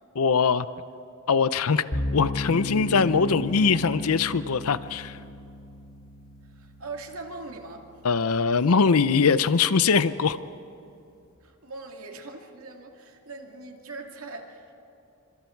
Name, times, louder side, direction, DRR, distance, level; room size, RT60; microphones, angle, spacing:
voice 1, 0.2-0.7 1.3-1.8 2.1-5.2 8.0-10.4, left 5 dB, 85° left, 15 dB, 0.6 m, -22 dB
sound 1, 1.9-9.0, left 1 dB, 45° left, 1.4 m, -35 dB
voice 2, 6.5-7.8 11.4-14.7, right 3 dB, 75° right, 3 dB, 2.6 m, -41 dB
29.5 x 26.0 x 4.6 m, 2.7 s
head